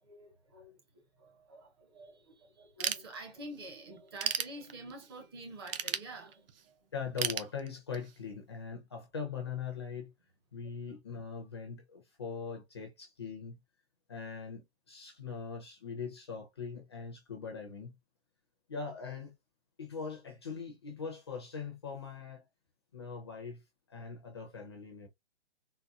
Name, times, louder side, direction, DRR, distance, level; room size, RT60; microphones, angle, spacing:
voice 1, 0.0-6.9, right 1 dB, 20° right, 0.7 m, -48 dB
Ratchet pawl / Tools, 2.8-3.6 4.0-5.1 5.7-6.6 7.2-8.2, right 7 dB, 60° right, 0.7 m, -35 dB
voice 2, 6.9-10.1 10.5-13.6 14.1-17.9 18.7-19.3 19.8-22.4 22.9-23.6 23.9-25.1, left 5 dB, 25° left, 0.5 m, -41 dB
4.0 x 2.2 x 2.4 m
hypercardioid pair, 165°, 33 cm